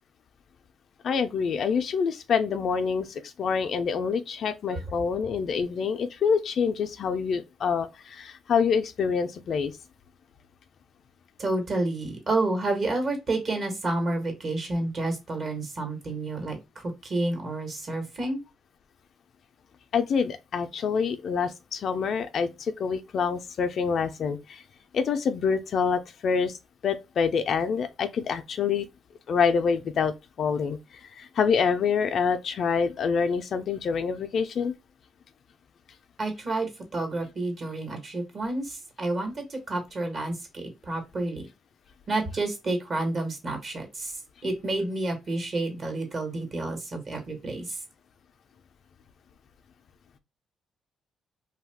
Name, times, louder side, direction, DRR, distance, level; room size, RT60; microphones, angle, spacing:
voice 1, 1.0-9.7 19.9-24.6 24.9-26.6 26.8-28.9 29.3-30.1 30.4-30.8 31.2-34.7, left 6 dB, 60° left, 0.4 m, -26 dB
voice 2, 11.4-18.4 36.2-41.5 42.1-47.8, right 2 dB, 45° right, 1.2 m, -30 dB
2.7 x 2.3 x 3.4 m
cardioid pair, 90°, 0 cm